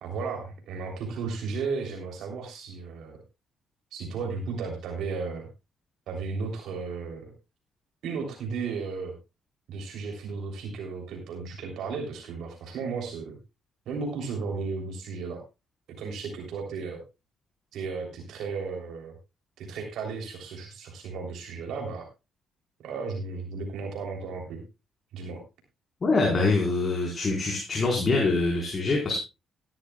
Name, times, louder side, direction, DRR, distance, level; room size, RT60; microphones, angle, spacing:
voice 1, 0.0-3.2 3.9-5.5 6.1-7.2 8.0-9.1 9.7-13.4 13.8-15.4 16.0-17.0 17.7-19.2 19.6-22.1 22.8-24.6 25.1-25.4, right 4 dB, 75° right, 2 dB, 3.3 m, -34 dB
voice 2, 26.0-29.2, left 3 dB, 40° left, -1 dB, 4.4 m, -24 dB
17.0 x 12.0 x 2.3 m, 0.26 s
cardioid pair, 75°, 0 cm